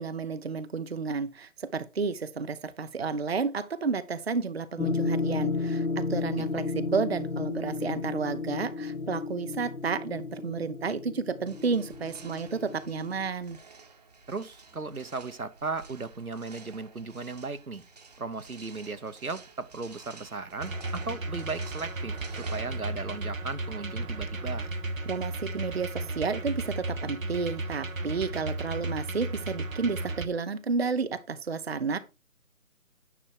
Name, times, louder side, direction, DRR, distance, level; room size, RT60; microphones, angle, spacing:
voice 1, 0.0-13.6 25.1-32.0, right 5 dB, 45° right, 0.7 m, -31 dB
sound 1, 4.8-13.3, left 3 dB, 75° left, 1.3 m, -33 dB
sound 2, 11.5-23.3, right 4 dB, 30° right, 1.1 m, -51 dB
voice 2, 14.3-17.8 18.2-24.7, right 4 dB, 90° right, 1.1 m, -36 dB
sound 3, 20.6-30.3, right 2 dB, 70° right, 1.2 m, -34 dB
9.9 x 6.1 x 4.5 m
figure-of-eight pair, 150°, 42 cm